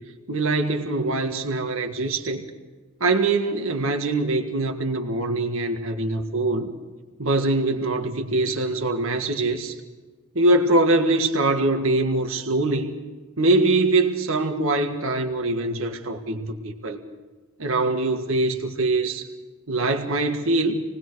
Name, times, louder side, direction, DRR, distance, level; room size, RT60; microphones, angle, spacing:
voice 1, 0.3-2.4 3.0-6.7 7.2-9.7 10.4-13.0 13.4-17.0 17.6-19.2 19.7-20.8, right 2 dB, 65° right, 4 dB, 1.7 m, -23 dB
27.5 x 19.5 x 4.8 m, 1.3 s
head